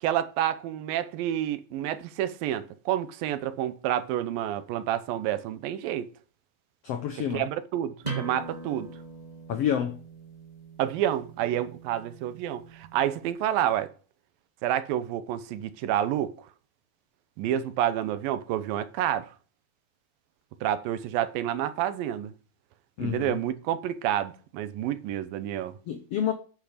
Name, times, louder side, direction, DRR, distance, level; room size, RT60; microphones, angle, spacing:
voice 1, 0.0-6.1 7.3-8.9 10.8-13.9 14.6-16.3 17.4-19.3 20.6-22.3 23.0-25.7, right 11 dB, 85° right, 2.6 m, -29 dB
voice 2, 6.8-7.4 9.5-10.0 23.0-23.4 25.9-26.3, left 9 dB, 90° left, 1.3 m, -28 dB
sound 1, 8.0-13.4, right 4 dB, 10° right, 2.9 m, -41 dB
9.1 x 8.5 x 5.0 m
omnidirectional pair, 4.0 m